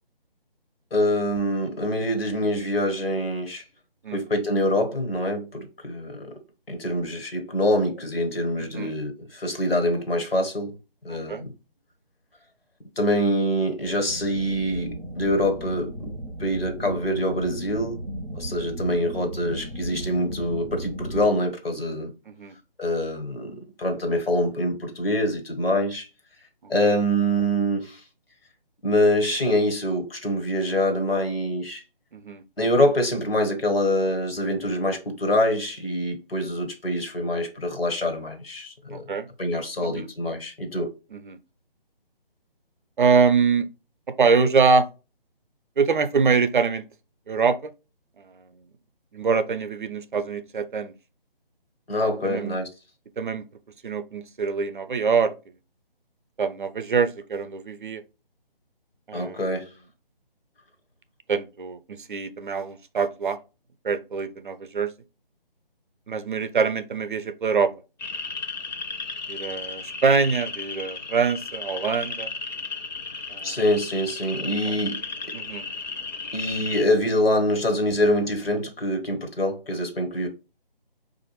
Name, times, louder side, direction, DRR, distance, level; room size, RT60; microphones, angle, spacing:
voice 1, 0.9-3.6 4.1-6.3 6.7-10.7 11.0-11.5 13.0-16.1 16.4-18.0 18.3-22.1 22.8-26.1 26.7-28.0 28.8-31.8 32.6-39.0 39.4-40.9 51.9-52.7 59.1-59.6 73.4-75.0 76.3-80.3, equal, 80° left, 1.4 m, -25 dB
voice 2, 8.6-8.9 11.1-11.4 22.3-22.5 26.6-26.9 32.1-32.4 38.9-39.3 39.8-40.1 41.1-41.4 43.0-43.7 44.2-44.9 45.8-46.8 47.3-47.6 48.3-48.4 49.1-50.9 52.2-52.6 53.2-53.5 53.8-55.3 56.4-58.0 59.1-59.5 61.3-63.4 63.8-64.9 66.1-67.7 69.3-72.3 73.3-73.6 74.7-74.8 75.3-75.6, right 5 dB, 60° right, 0.5 m, -24 dB
sound 1, 14.1-21.3, right 1 dB, 10° left, 0.5 m, -36 dB
sound 2, 68.0-76.8, left 4 dB, 50° left, 0.7 m, -34 dB
4.8 x 2.5 x 3.0 m
figure-of-eight pair, 155°, 29 cm